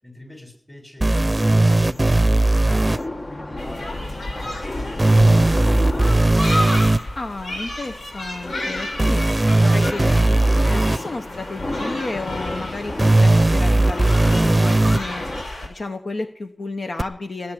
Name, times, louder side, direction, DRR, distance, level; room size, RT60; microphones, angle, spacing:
voice 1, 0.0-6.3, left 1 dB, 25° left, 5 dB, 7.0 m, -42 dB
sound 1, 1.0-3.0 5.0-7.0 9.0-11.0 13.0-15.0 17.0-17.1, right 2 dB, 25° right, 0.6 m, -17 dB
sound 2, 1.6-15.4, left 1 dB, 50° left, 1.9 m, -33 dB
sound 3, 3.6-15.7, left 1 dB, 90° left, 5.5 m, -32 dB
voice 2, 7.1-9.2 9.5-17.5, left 3 dB, 70° left, 6 dB, 1.1 m, -32 dB
19.0 x 9.6 x 7.8 m, 0.66 s
wide cardioid pair, 60°, 0 cm